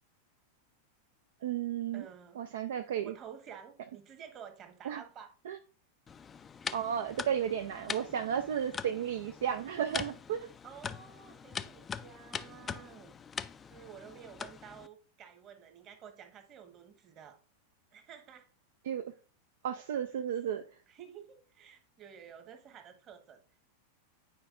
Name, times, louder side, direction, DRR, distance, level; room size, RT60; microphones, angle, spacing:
voice 1, 1.4-2.1 2.4-3.1 4.8-5.0 5.5-5.6 6.7-10.5 18.9-19.0 19.6-20.6, right 9 dB, 60° right, 0.4 m, -33 dB
voice 2, 1.9-2.4 3.0-5.3 10.6-13.1 13.7-17.4 17.9-18.5 20.4-23.4, right 8 dB, 30° right, 1.3 m, -51 dB
sound 1, 6.1-14.9, left 6 dB, 20° left, 0.3 m, -43 dB
9.1 x 4.9 x 2.5 m
figure-of-eight pair, 90°, 0 cm